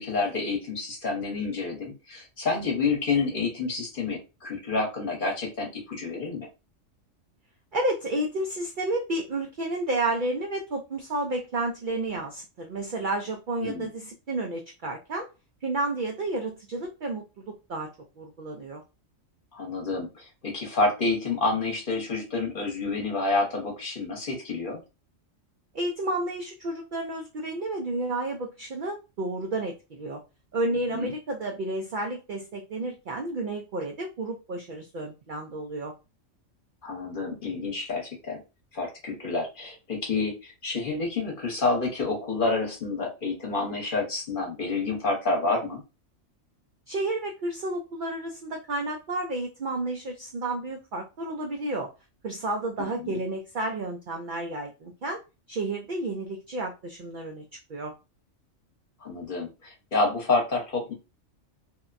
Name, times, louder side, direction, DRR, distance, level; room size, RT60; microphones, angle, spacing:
voice 1, 0.0-6.5 13.6-13.9 19.5-24.8 30.9-31.1 36.8-38.4 38.7-45.8 52.8-53.2 59.0-60.9, left 3 dB, 45° left, -1 dB, 1.0 m, -29 dB
voice 2, 7.7-15.3 15.6-17.9 18.2-18.8 25.7-30.2 30.5-35.9 46.9-51.9 52.2-55.2 55.5-57.4 57.7-57.9, right 2 dB, 70° right, 2 dB, 0.4 m, -31 dB
2.8 x 2.1 x 2.4 m, 0.28 s
omnidirectional pair, 1.4 m